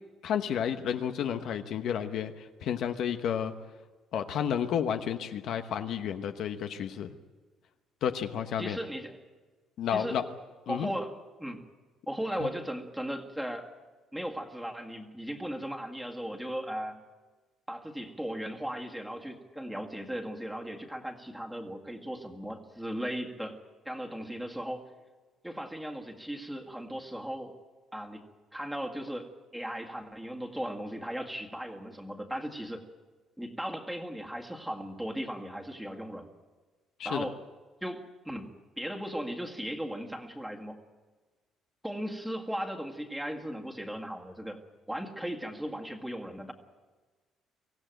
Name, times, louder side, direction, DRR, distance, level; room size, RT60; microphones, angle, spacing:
voice 1, 0.2-3.5 4.1-7.1 8.0-8.8 9.8-10.2 10.7-10.9 12.4-12.5 37.0-37.2, left 8 dB, 60° left, 7 dB, 1.1 m, -31 dB
voice 2, 8.6-9.2 9.9-10.2 10.7-11.6 12.1-13.7 14.1-17.0 17.7-23.6 23.9-24.8 25.4-27.5 27.9-28.2 28.5-32.8 33.4-36.3 37.0-37.4 37.8-38.5 38.8-40.8 41.8-44.6 44.9-46.5, equal, 5° right, 2 dB, 1.9 m, -37 dB
24.0 x 16.0 x 9.1 m, 1.3 s
cardioid pair, 155°, 0 cm